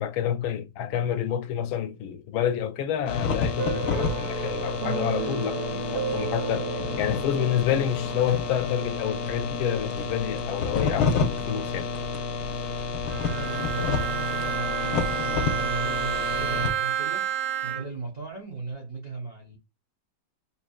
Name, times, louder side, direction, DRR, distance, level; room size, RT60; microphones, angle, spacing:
voice 1, 0.0-6.7 7.0-11.9, left 10 dB, 80° left, 1.4 m, -28 dB
sound 1, 3.1-16.7, left 5 dB, 65° left, 1.1 m, -29 dB
sound 2, 3.6-12.8, right 5 dB, 65° right, 1.1 m, -36 dB
Bowed string instrument, 13.1-18.1, right 10 dB, 85° right, 1.7 m, -30 dB
voice 2, 13.2-17.3 17.6-19.6, right 4 dB, 45° right, 0.5 m, -37 dB
5.5 x 3.0 x 2.3 m
omnidirectional pair, 2.2 m